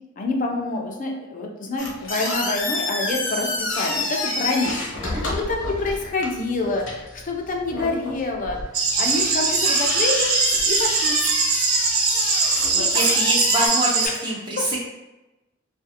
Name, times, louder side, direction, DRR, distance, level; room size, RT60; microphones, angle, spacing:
voice 1, 0.2-10.4 10.7-11.2 12.7-12.9 14.0-14.2 14.6-14.7, left 2 dB, 40° left, 1 dB, 0.4 m, -27 dB
sound 1, 1.8-13.7, left 2 dB, 65° left, 0.8 m, -29 dB
sound 2, 8.7-14.1, right 4 dB, 90° right, 0.5 m, -21 dB
voice 2, 12.7-14.8, right 1 dB, 25° right, -5 dB, 0.5 m, -25 dB
2.4 x 2.4 x 2.7 m, 1.0 s
head